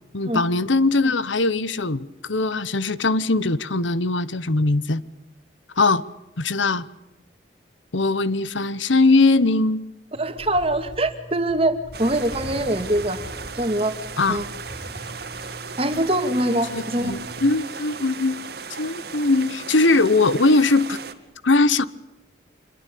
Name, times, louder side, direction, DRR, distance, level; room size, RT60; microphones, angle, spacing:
voice 1, 0.1-5.0 5.8-6.0 6.4-6.9 7.9-9.8 14.2-14.4 16.7-18.4 18.8-21.0 21.4-21.9, left 3 dB, 80° left, 1.1 m, -20 dB
Zipper (clothing), 10.1-17.4, right 1 dB, 40° left, 6.0 m, -41 dB
voice 2, 10.1-13.2 13.6-13.9 14.3-14.5 15.8-17.1, right 1 dB, 30° right, 2.4 m, -23 dB
sound 1, 11.9-21.1, right 5 dB, 55° right, 2.2 m, -36 dB
26.0 x 22.5 x 8.5 m
head